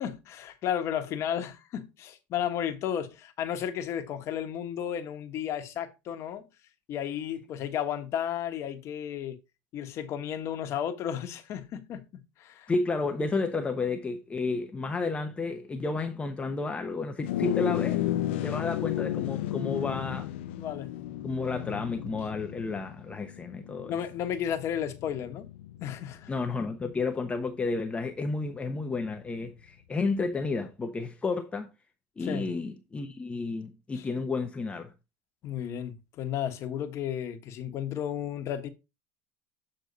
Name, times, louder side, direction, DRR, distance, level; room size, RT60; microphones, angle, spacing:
voice 1, 0.0-6.4 6.9-9.4 9.7-12.7 13.1-13.2 20.0-20.2 20.6-20.9 23.8-25.5 25.8-26.3 32.2-32.5 33.9-34.0 35.4-38.7, left 9 dB, 50° left, 1.3 m, -33 dB
voice 2, 12.7-18.0 18.4-20.3 21.2-24.0 26.3-31.7 32.2-34.9, left 3 dB, 20° left, 0.9 m, -31 dB
sound 1, 17.2-26.8, left 13 dB, 85° left, 0.5 m, -33 dB
8.3 x 4.2 x 4.0 m
supercardioid pair, 110°, 6 cm